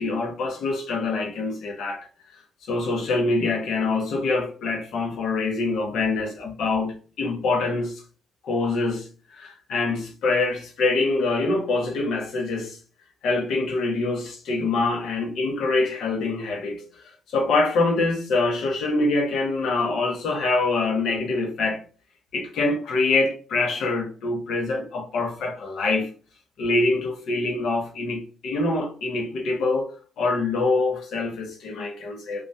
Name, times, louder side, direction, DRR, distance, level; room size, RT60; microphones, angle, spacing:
voice 1, 0.0-2.1 2.7-8.0 8.4-12.8 13.2-21.8 22.3-26.1 26.6-32.4, left 3 dB, 75° left, 0.7 m, -25 dB
2.3 x 2.1 x 2.6 m
cardioid pair, 90°, 0 cm